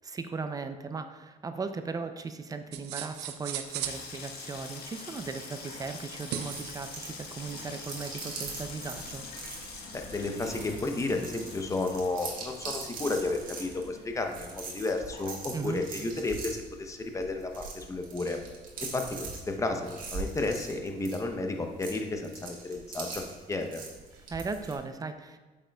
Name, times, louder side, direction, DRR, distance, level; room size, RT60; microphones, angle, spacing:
voice 1, 0.0-9.3 15.5-15.8 24.2-25.4, right 4 dB, 20° right, 9 dB, 0.4 m, -37 dB
sound 1, 2.7-4.0 6.1-6.7, right 10 dB, 85° right, 0.5 m, -36 dB
Water tap faucet / Sink (filling or washing), 3.6-16.4 16.6-17.3 17.6-17.9, left 4 dB, 70° left, 1.3 m, -45 dB
sound 2, 6.4-24.8, right 4 dB, 55° right, 1.5 m, -43 dB
voice 2, 9.9-18.4 18.8-23.2 23.5-23.8, left 2 dB, 20° left, 4 dB, 0.7 m, -32 dB
8.0 x 6.4 x 2.3 m, 1.2 s
cardioid pair, 110°, 17 cm